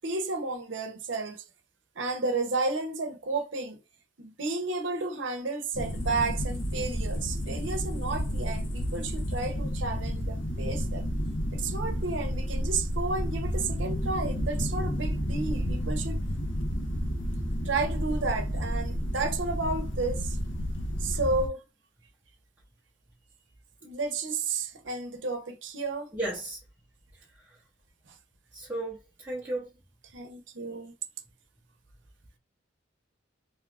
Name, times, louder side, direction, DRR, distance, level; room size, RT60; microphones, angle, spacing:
voice 1, 0.0-1.4 2.0-3.8 4.2-11.1 11.5-16.2 17.6-20.4 21.0-21.6 23.8-26.1 28.1-28.2 30.1-30.9, right 3 dB, 70° right, 0.7 m, -32 dB
sound 1, 5.7-21.5, equal, 75° left, 0.8 m, -31 dB
voice 2, 26.1-26.6 27.4-27.6 28.5-29.7, right 1 dB, 10° right, 0.6 m, -34 dB
2.8 x 2.4 x 3.4 m
head